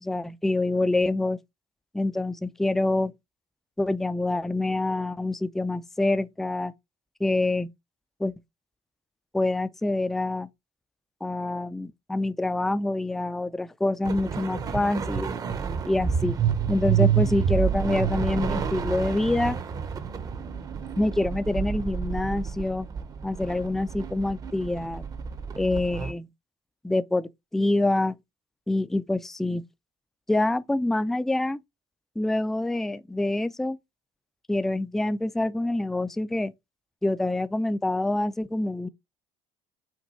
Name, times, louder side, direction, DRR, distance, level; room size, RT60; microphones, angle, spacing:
voice 1, 0.0-1.4 1.9-3.1 3.8-6.7 7.2-7.7 8.2-8.3 9.3-10.5 11.2-15.3 15.8-16.4 16.7-19.6 21.0-22.9 23.2-25.1 25.6-26.3 26.8-28.2 28.7-29.6 30.3-31.6 32.2-33.8 34.5-36.5 37.0-38.9, left 2 dB, 5° left, 0.3 m, -26 dB
sound 1, 14.0-26.1, right 8 dB, 35° right, 0.7 m, -29 dB
6.0 x 2.3 x 3.9 m
cardioid pair, 115°, 11 cm